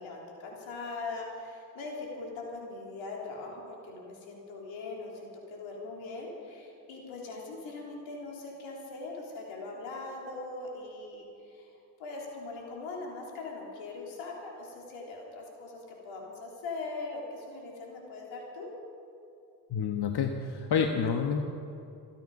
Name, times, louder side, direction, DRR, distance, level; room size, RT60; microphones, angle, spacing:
voice 1, 0.0-11.7 12.0-18.7, left 3 dB, 85° left, -2 dB, 3.5 m, -41 dB
voice 2, 19.7-21.4, left 6 dB, 60° left, 4 dB, 1.3 m, -28 dB
27.5 x 9.3 x 5.5 m, 2.6 s
supercardioid pair, 50°, 45 cm